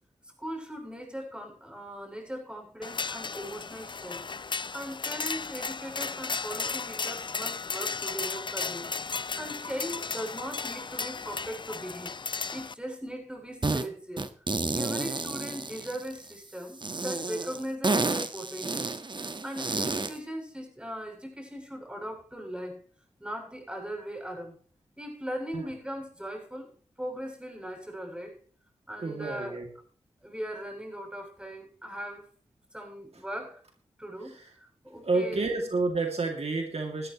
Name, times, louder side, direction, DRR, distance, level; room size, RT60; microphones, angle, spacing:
voice 1, 0.4-8.9 9.4-12.2 12.5-14.3 14.7-18.9 19.4-22.8 23.2-24.6 25.0-26.7 27.0-28.4 28.9-29.6 30.2-32.3 32.7-33.6 34.0-35.4, equal, 10° right, 2 dB, 7.9 m, -39 dB
sound 1, 2.8-12.7, left 4 dB, 40° left, 0.5 m, -35 dB
sound 2, 13.6-13.9 14.2-16.3 16.8-20.2, right 3 dB, 40° right, 1.4 m, -30 dB
voice 2, 29.0-29.7 34.2-34.5 35.0-37.1, right 3 dB, 60° right, 3 dB, 2.5 m, -30 dB
19.0 x 12.5 x 3.1 m, 0.43 s
cardioid pair, 50°, 12 cm